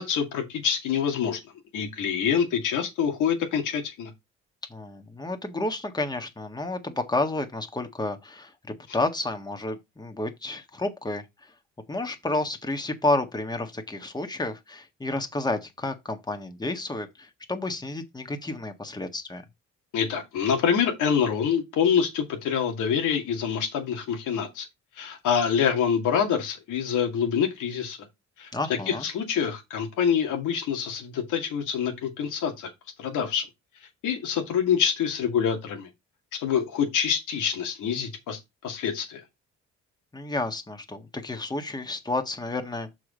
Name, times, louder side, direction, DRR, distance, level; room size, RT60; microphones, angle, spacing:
voice 1, 0.0-1.4 1.7-4.1 19.9-24.7 25.0-28.0 28.4-32.7 33.0-33.5 34.0-35.9 36.3-39.2, left 7 dB, 90° left, 2.2 m, -26 dB
voice 2, 4.7-11.2 11.9-19.4 28.5-29.0 40.1-42.9, left 2 dB, 15° left, 1.5 m, -30 dB
6.3 x 4.8 x 5.1 m
cardioid pair, 90°, 30 cm